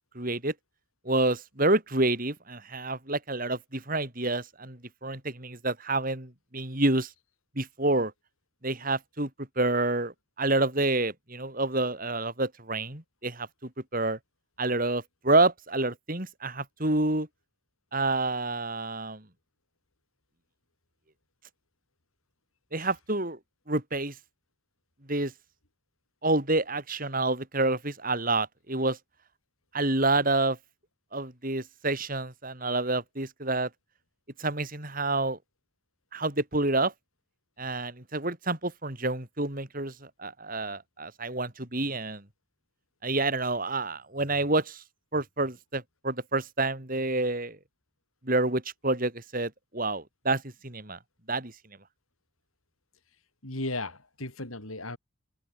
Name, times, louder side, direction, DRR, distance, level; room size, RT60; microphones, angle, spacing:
voice 1, 0.1-0.5 1.0-7.1 7.6-8.1 8.6-9.3 9.6-14.2 14.6-17.3 17.9-19.2 22.7-23.4 23.7-24.2 25.1-25.3 26.2-29.0 29.7-30.6 31.1-33.7 34.4-35.4 36.1-36.9 37.6-42.2 43.0-44.8 45.1-47.6 48.2-51.0 51.3-51.5, right 2 dB, 40° right, 3.9 m, -28 dB
voice 2, 53.4-55.0, left 2 dB, 85° left, 7.0 m, -35 dB
head